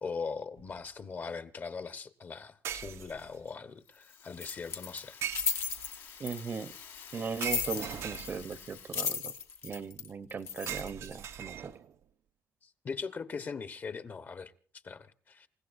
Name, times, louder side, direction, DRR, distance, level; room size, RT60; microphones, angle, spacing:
voice 1, 0.0-5.2 12.6-14.5 14.8-15.5, left 5 dB, 40° left, 1.1 m, -40 dB
sound 1, 0.6-0.8 2.6-3.5 5.2-6.0 7.4-8.7 10.7-12.0, right 9 dB, 80° right, 0.8 m, -40 dB
Rattle (instrument), 3.8-9.8, left 7 dB, 90° left, 3.5 m, -51 dB
sound 2, 4.4-6.6 7.4-8.5 8.8-11.1, left 6 dB, 65° left, 1.4 m, -35 dB
voice 2, 6.2-6.7 7.1-9.3 9.6-11.7, right 5 dB, 45° right, 0.8 m, -38 dB
28.0 x 16.0 x 2.6 m
cardioid pair, 125°, 5 cm